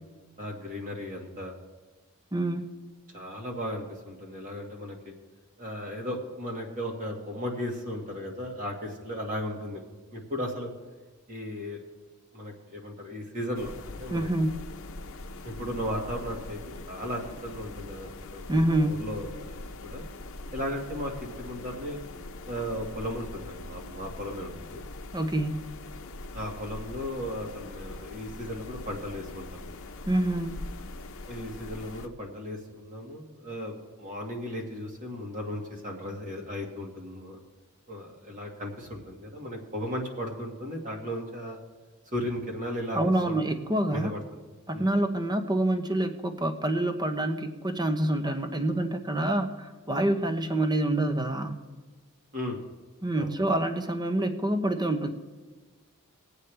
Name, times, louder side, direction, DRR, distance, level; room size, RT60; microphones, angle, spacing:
voice 1, 0.4-1.5 3.1-5.1 5.6-9.8 10.1-10.7 11.3-11.8 12.3-14.3 15.4-16.6 16.9-19.5 19.8-20.1 20.5-22.0 22.5-24.9 26.3-29.8 31.3-37.4 37.9-41.6 42.1-43.4 43.9-44.2 44.7-44.9 52.3-52.6 53.2-53.3, equal, 35° right, 0 dB, 1.9 m, -36 dB
voice 2, 2.3-2.7 14.1-14.5 18.5-19.0 25.1-25.6 30.1-30.6 42.9-44.1 44.7-51.6 53.0-55.1, right 1 dB, 20° right, 7 dB, 0.8 m, -27 dB
sound 1, 13.5-32.1, left 2 dB, 65° left, 0.8 m, -42 dB
21.0 x 8.2 x 3.4 m, 1.3 s
head